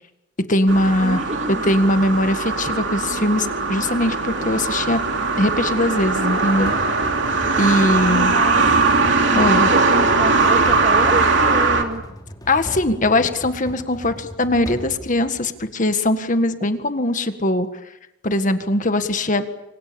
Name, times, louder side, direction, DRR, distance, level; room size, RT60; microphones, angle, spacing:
voice 1, 0.5-1.2 1.7-5.0 5.4-6.7 7.6-8.4 9.4-9.7 12.5-17.7 18.2-19.4, left 1 dB, 40° left, 9 dB, 1.8 m, -20 dB
sound 1, 0.7-11.8, right 3 dB, 65° right, 3.0 m, -20 dB
voice 2, 1.0-1.7 8.1-8.9 9.3-12.0, right 1 dB, 40° right, 6 dB, 2.1 m, -28 dB
sound 2, 6.7-15.8, equal, 20° left, 2.9 m, -37 dB
29.0 x 25.0 x 7.0 m, 0.88 s
head